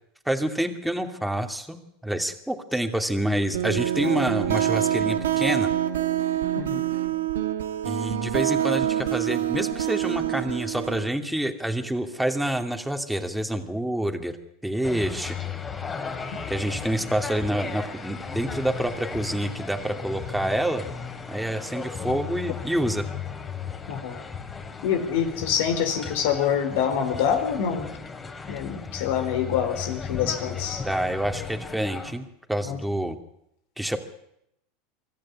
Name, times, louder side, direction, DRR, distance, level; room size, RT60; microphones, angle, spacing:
voice 1, 0.3-5.7 7.8-14.4 14.6-15.4 16.5-20.8 21.3-23.1 28.7-28.8 30.8-33.2 33.8-34.0, right 1 dB, 5° right, 5 dB, 2.7 m, -27 dB
sound 1, 3.5-11.1, right 11 dB, 85° right, 1.4 m, -26 dB
voice 2, 6.6-6.9 22.1-22.2 23.9-24.2 24.8-27.9 28.5-30.8 32.7-32.8, left 8 dB, 70° left, 7 dB, 4.3 m, -26 dB
sound 2, 14.8-32.1, left 6 dB, 25° left, 3.7 m, -36 dB
24.5 x 14.0 x 9.9 m, 0.79 s
hypercardioid pair, 95°, 0 cm